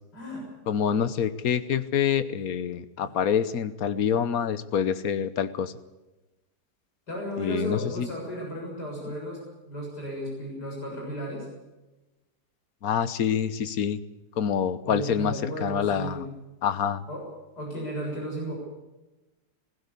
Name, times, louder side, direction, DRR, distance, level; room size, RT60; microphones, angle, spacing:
voice 1, 0.1-0.4 7.1-9.4 9.7-11.5 14.8-16.2 17.1-17.2 17.6-18.5, right 1 dB, 80° left, -2 dB, 7.8 m, -34 dB
voice 2, 0.7-5.7 7.4-8.1 9.0-9.1 12.8-14.0 14.4-16.3 16.6-17.0, left 8 dB, 65° left, 13 dB, 1.5 m, -26 dB
21.0 x 16.0 x 8.4 m, 1.1 s
omnidirectional pair, 1.7 m